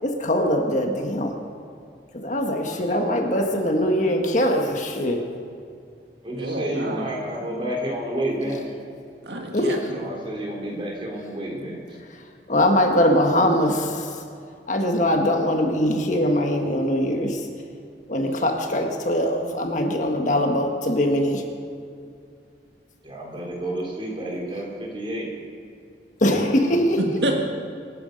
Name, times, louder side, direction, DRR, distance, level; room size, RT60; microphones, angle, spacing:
voice 1, 0.0-1.3 2.1-5.2 9.5-9.8 12.5-14.2 14.7-17.4 18.1-21.4 26.2-27.0, left 1 dB, 45° left, 3 dB, 1.6 m, -22 dB
voice 2, 2.7-3.2 6.2-8.6 9.8-11.8 18.7-18.9 23.0-25.3, right 1 dB, 30° right, -2 dB, 3.7 m, -30 dB
voice 3, 6.4-7.1 9.2-10.0 27.0-27.3, right 1 dB, 75° right, 2 dB, 1.9 m, -28 dB
25.0 x 10.0 x 5.3 m, 2.4 s
head